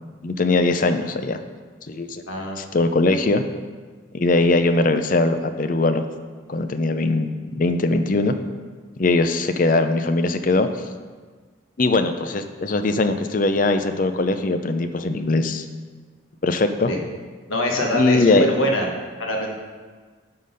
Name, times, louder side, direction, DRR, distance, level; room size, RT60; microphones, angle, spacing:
voice 1, 0.2-1.4 1.9-2.2 2.6-3.4 4.1-6.1 6.5-8.3 9.0-10.7 11.8-15.6 16.4-16.9 17.9-18.5, left 2 dB, 40° left, 9 dB, 0.5 m, -20 dB
voice 2, 2.3-2.6 16.9-17.0 17.5-18.9 19.2-19.5, left 1 dB, 85° left, 0 dB, 1.5 m, -23 dB
11.5 x 3.9 x 5.5 m, 1.5 s
head